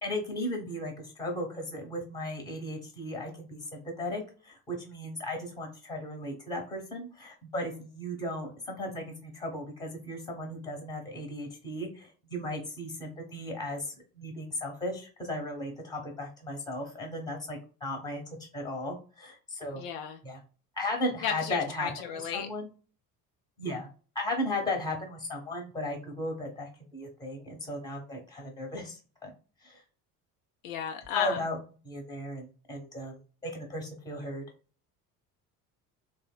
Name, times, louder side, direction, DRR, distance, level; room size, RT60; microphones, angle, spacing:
voice 1, 0.0-18.2 18.5-19.8 20.2-20.4 20.8-22.7 23.6-23.9 24.1-29.3 29.6-29.8 31.1-31.6 31.8-34.4, left 1 dB, 10° left, 2 dB, 1.0 m, -36 dB
voice 2, 19.8-20.2 21.2-22.5 30.6-31.4, left 8 dB, 60° left, 6 dB, 0.5 m, -34 dB
2.9 x 2.1 x 2.2 m, 0.37 s
figure-of-eight pair, 60°, 47 cm